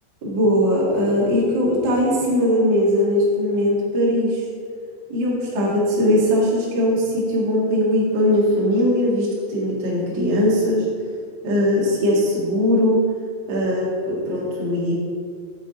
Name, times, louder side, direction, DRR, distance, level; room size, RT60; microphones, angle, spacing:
voice 1, 0.2-4.5 5.1-10.8 11.4-13.0 13.5-14.9, left 1 dB, 45° right, -5 dB, 1.6 m, -20 dB
8.8 x 7.8 x 3.9 m, 2.1 s
omnidirectional pair, 5.2 m